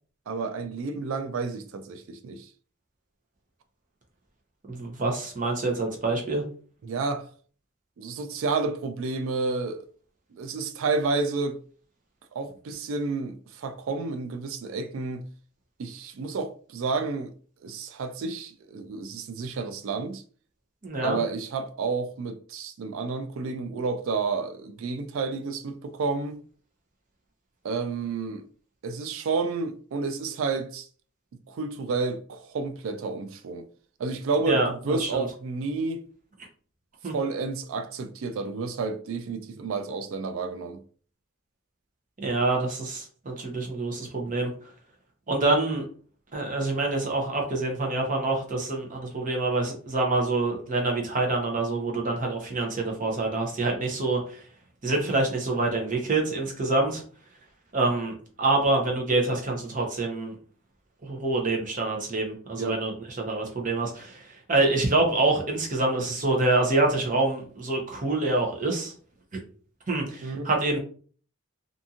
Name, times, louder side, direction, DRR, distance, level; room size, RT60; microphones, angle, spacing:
voice 1, 0.3-2.5 6.8-7.3 8.0-9.9 10.3-11.6 12.3-15.3 15.8-17.3 17.6-20.2 21.0-26.4 27.6-28.4 28.8-30.9 31.5-33.6 34.0-36.0 37.1-40.8 62.6-62.8 70.2-70.5, right 4 dB, 70° right, 0.4 m, -30 dB
voice 2, 4.7-6.4 20.8-21.2 34.5-35.3 37.0-37.1 42.2-44.5 45.3-45.8 46.3-54.4 54.8-57.0 57.7-60.4 61.0-68.9 69.3-69.4 69.9-70.8, right 2 dB, 40° right, 0.7 m, -26 dB
2.7 x 2.5 x 2.4 m
head